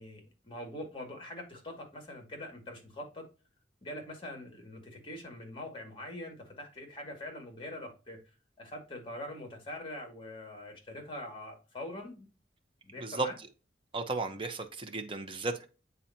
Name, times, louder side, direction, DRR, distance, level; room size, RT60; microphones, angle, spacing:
voice 1, 0.0-3.2 3.8-8.2 8.6-12.3 12.8-13.3, left 1 dB, 30° left, 2.2 m, -43 dB
voice 2, 13.9-15.7, right 3 dB, 30° right, 0.9 m, -34 dB
8.8 x 4.1 x 2.8 m
head